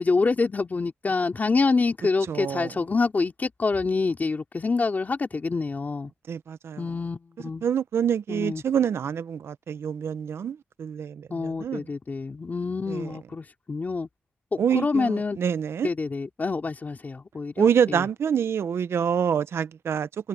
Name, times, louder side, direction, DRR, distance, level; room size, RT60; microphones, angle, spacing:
voice 1, 0.0-6.1 6.8-7.7 8.3-8.6 11.3-14.1 14.5-15.4 15.8-18.1, left 4 dB, 40° left, 2.8 m, -26 dB
voice 2, 2.3-2.7 6.3-6.8 7.6-11.8 12.9-13.1 14.6-15.9 17.6-20.3, right 8 dB, 80° right, 0.7 m, -26 dB
cardioid pair, 80°, 4 cm